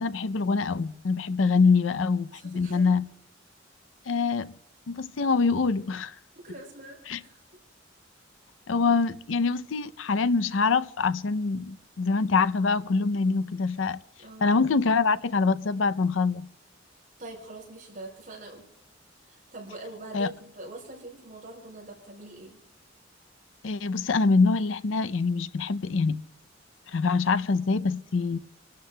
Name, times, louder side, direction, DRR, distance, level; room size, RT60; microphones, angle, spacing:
voice 1, 0.0-3.1 4.1-4.5 4.9-6.1 7.1-7.2 8.7-14.0 14.4-16.5 20.1-20.3 23.6-26.2 26.9-28.4, left 4 dB, 75° left, 0.5 m, -25 dB
voice 2, 2.3-2.9 6.3-7.4 14.2-14.5 17.2-18.6 19.3-22.6, right 2 dB, 45° right, 4.8 m, -43 dB
29.0 x 12.5 x 2.2 m
head